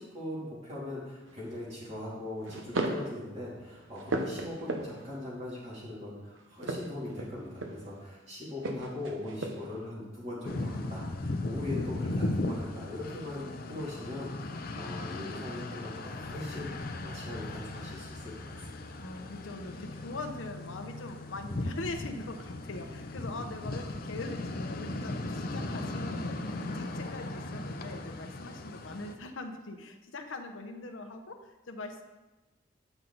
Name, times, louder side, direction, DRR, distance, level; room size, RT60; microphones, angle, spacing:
voice 1, 0.0-19.0, left 1 dB, 35° right, -7 dB, 3.0 m, -40 dB
sound 1, 1.3-1.6 2.4-3.1 3.6-5.2 6.5-8.0 8.6-9.8, right 2 dB, 80° right, 0.9 m, -36 dB
sound 2, 10.4-29.1, left 2 dB, 50° left, 0.6 m, -37 dB
voice 2, 19.0-32.0, left 2 dB, 80° left, 5 dB, 0.8 m, -42 dB
9.0 x 5.8 x 4.0 m, 1.1 s
head